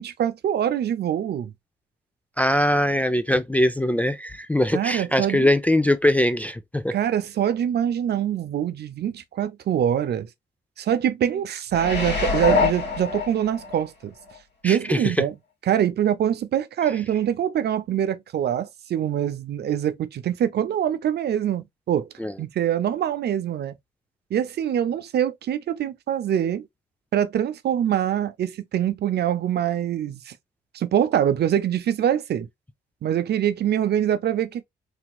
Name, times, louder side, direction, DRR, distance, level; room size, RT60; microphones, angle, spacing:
voice 1, 0.0-1.5 4.7-5.5 6.9-10.3 10.8-14.1 14.6-15.3 15.7-22.1 22.4-23.7 24.3-26.7 27.1-30.4 30.7-32.5 33.0-34.6, right 10 dB, 55° right, 0.6 m, -24 dB
voice 2, 2.4-7.0 14.6-15.3 22.2-22.3, left 1 dB, 5° left, 0.3 m, -22 dB
sound 1, 11.7-13.8 14.3-14.4, left 4 dB, 60° left, 2.1 m, -24 dB
3.4 x 2.9 x 2.2 m
cardioid pair, 90°, 20 cm